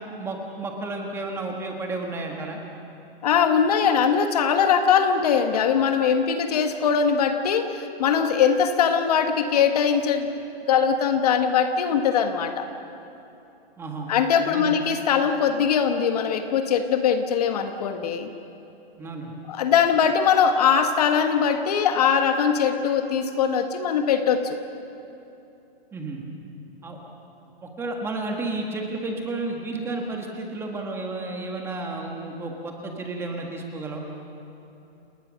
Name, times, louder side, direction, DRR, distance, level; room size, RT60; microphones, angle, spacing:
voice 1, 0.2-2.6 13.8-14.1 14.5-14.7 19.0-19.3 25.9-26.2 26.8-27.0 27.6-34.0, right 2 dB, 10° right, 1 dB, 1.6 m, -32 dB
voice 2, 3.2-12.7 14.1-18.3 19.5-24.6, left 7 dB, 40° left, 7 dB, 1.4 m, -21 dB
29.5 x 19.0 x 6.3 m, 2.8 s
hypercardioid pair, 165°, 31 cm